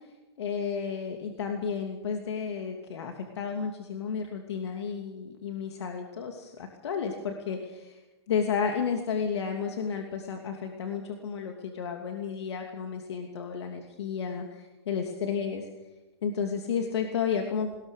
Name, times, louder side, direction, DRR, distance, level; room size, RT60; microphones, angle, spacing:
voice 1, 0.4-8.0 8.3-15.7 16.2-17.8, left 6 dB, 80° left, 3 dB, 2.8 m, -32 dB
21.5 x 20.5 x 6.6 m, 1.1 s
hypercardioid pair, 160°, 14 cm